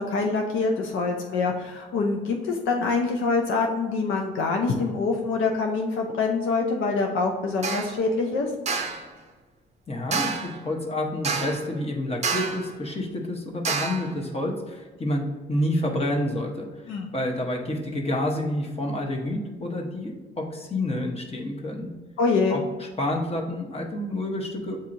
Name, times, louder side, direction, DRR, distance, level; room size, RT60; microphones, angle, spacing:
voice 1, 0.0-8.5 16.9-17.1 22.2-22.6, left 4 dB, 80° left, 2 dB, 0.6 m, -25 dB
sound 1, 7.6-7.9 8.7-9.0 10.1-10.6 11.2-11.7 12.2-12.7 13.6-14.1, right 4 dB, 35° right, 0.6 m, -28 dB
voice 2, 9.9-21.9 22.5-24.8, left 1 dB, 30° left, 1 dB, 0.9 m, -29 dB
7.4 x 2.7 x 2.6 m, 1.3 s
cardioid pair, 90°, 20 cm